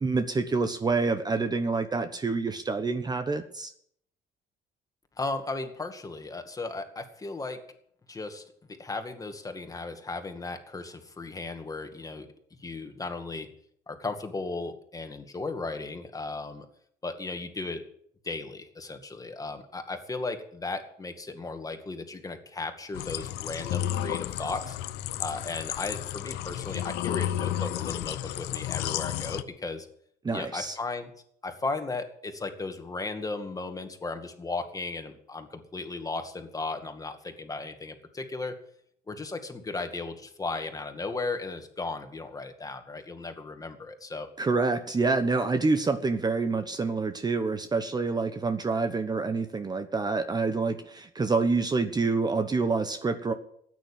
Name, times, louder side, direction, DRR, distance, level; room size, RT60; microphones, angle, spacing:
voice 1, 0.0-3.7 30.2-30.7 44.4-53.3, right 4 dB, 25° right, 9 dB, 1.1 m, -27 dB
voice 2, 5.2-7.6 8.1-8.4 8.7-12.3 12.6-13.5 13.9-16.7 17.0-17.8 18.2-24.8 25.2-29.9 30.3-31.1 31.4-38.6 39.1-44.3, left 3 dB, 20° left, 6 dB, 2.2 m, -36 dB
sound 1, 22.9-29.4, left 12 dB, 85° left, 0.8 m, -32 dB
14.0 x 9.5 x 8.8 m, 0.68 s
cardioid pair, 110°, 17 cm